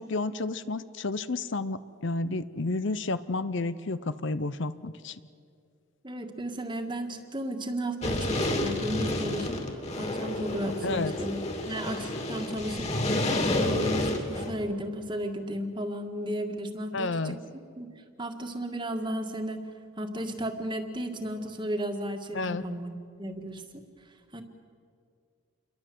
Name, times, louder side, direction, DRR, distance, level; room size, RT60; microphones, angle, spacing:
voice 1, 0.0-5.2 10.8-11.1 16.9-17.4 22.3-22.6, left 3 dB, 55° left, 14 dB, 0.7 m, -31 dB
voice 2, 6.0-11.4 11.7-17.3 17.8-17.9 18.2-19.6 20.0-22.9 23.2-23.6 24.3-24.4, equal, 20° right, 5 dB, 1.9 m, -34 dB
sound 1, 8.0-14.5, left 1 dB, 30° left, 2.8 m, -30 dB
29.0 x 22.5 x 7.8 m, 2.3 s
head